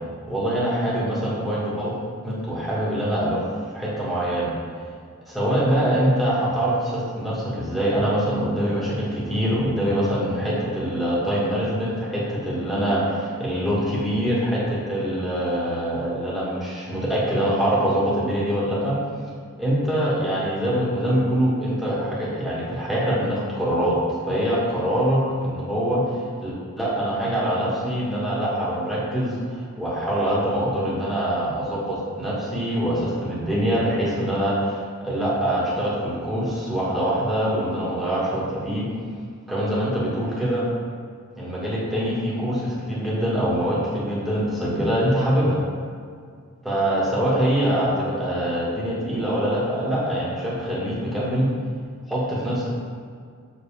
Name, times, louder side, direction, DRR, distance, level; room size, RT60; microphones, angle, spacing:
voice 1, 0.3-1.9 2.2-3.4 3.7-4.5 5.3-18.9 19.6-24.0 24.2-26.0 26.4-38.8 39.5-40.6 41.3-45.6 46.6-51.5 52.1-52.8, equal, ahead, -8 dB, 1.5 m, -24 dB
6.1 x 5.2 x 3.4 m, 2.1 s
head